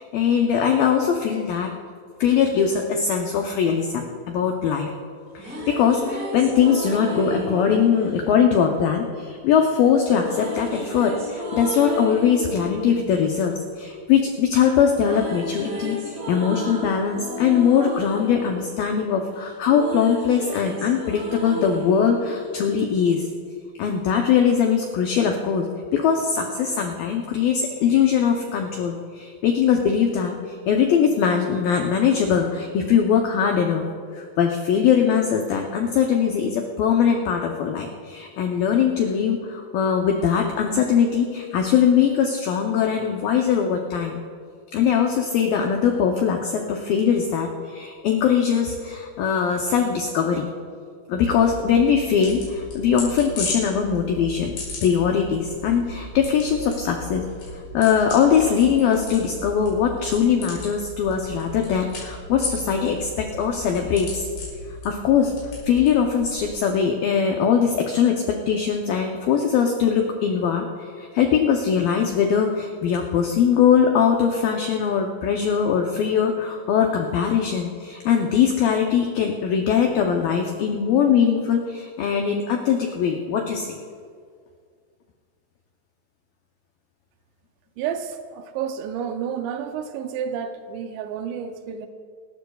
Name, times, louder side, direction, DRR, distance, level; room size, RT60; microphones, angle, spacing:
voice 1, 0.0-1.7 2.2-4.9 5.3-23.3 23.8-25.7 25.9-33.9 34.1-44.2 44.7-50.5 51.1-54.5 54.8-57.2 57.5-64.3 64.8-65.3 65.7-83.8, left 7 dB, 85° left, 2 dB, 2.0 m, -21 dB
sound 1, 5.1-9.3 10.2-14.4 14.7-23.2, left 1 dB, 55° right, 5.1 m, -33 dB
sound 2, 51.3-66.5, left 1 dB, 65° left, 6.4 m, -36 dB
voice 2, 87.8-91.9, right 8 dB, 80° right, 8 dB, 2.9 m, -30 dB
27.0 x 13.0 x 2.3 m, 2.1 s
omnidirectional pair, 5.1 m